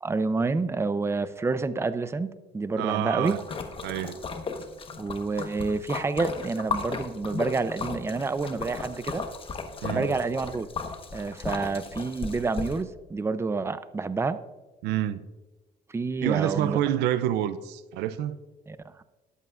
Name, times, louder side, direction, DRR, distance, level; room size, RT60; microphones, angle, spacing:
voice 1, 0.0-3.4 5.0-9.3 9.9-10.7 11.1-14.4 15.9-16.8 18.7-19.0, right 3 dB, 15° right, 0.5 m, -28 dB
voice 2, 2.8-3.4 3.8-4.2 9.8-10.1 14.8-15.2 16.2-18.4, right 12 dB, 90° right, 0.5 m, -27 dB
Splash splatter, 3.3-12.8, left 4 dB, 30° left, 1.2 m, -35 dB
21.0 x 8.2 x 2.5 m
cardioid pair, 110°, 17 cm